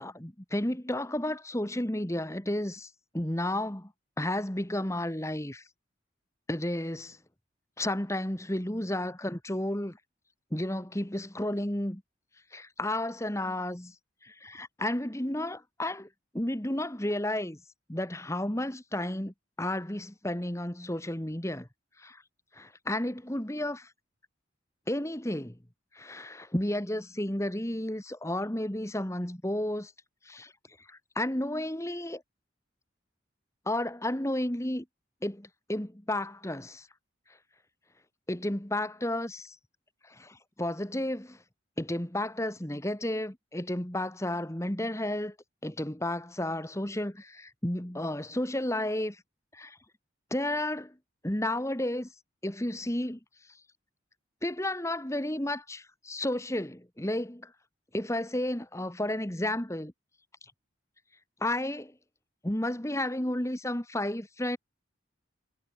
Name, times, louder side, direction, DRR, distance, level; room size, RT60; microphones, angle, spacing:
voice 1, 0.0-2.9 3.1-3.9 4.2-5.6 6.5-7.2 7.8-10.0 10.5-12.0 12.5-13.9 14.2-16.1 16.3-17.6 17.9-21.7 22.0-22.2 22.5-23.9 24.9-25.6 25.9-29.9 30.2-30.5 30.9-32.2 33.7-34.8 35.2-36.9 38.3-39.5 40.1-41.4 41.8-45.3 45.6-49.2 49.5-49.8 50.3-50.9 51.2-52.1 52.4-53.2 54.4-57.5 57.9-59.9 61.4-61.9 62.4-64.6, left 1 dB, 15° left, 1.6 m, -32 dB
head